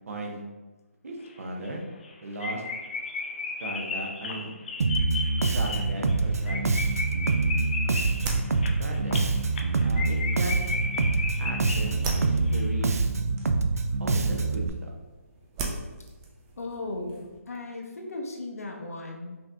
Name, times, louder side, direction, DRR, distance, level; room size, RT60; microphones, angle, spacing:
voice 1, 0.1-0.4 1.0-1.8 2.2-2.6 3.6-4.5 5.5-6.7 7.0-7.1 8.8-9.2 9.8-10.5 11.4-13.0 14.0-14.9, right 1 dB, 70° right, 1 dB, 0.9 m, -36 dB
sound 1, 1.3-1.4 1.6-1.7 2.0-2.1 2.4-12.2 12.5-12.6, left 3 dB, 40° left, 0.5 m, -34 dB
Bass guitar, 4.8-14.7, right 3 dB, 85° right, 0.4 m, -25 dB
sound 2, 7.1-17.4, right 3 dB, 15° right, 0.3 m, -40 dB
voice 2, 16.6-19.4, left 2 dB, 75° left, 1 dB, 0.8 m, -36 dB
5.3 x 2.8 x 2.2 m, 1.2 s
hypercardioid pair, 160°, 8 cm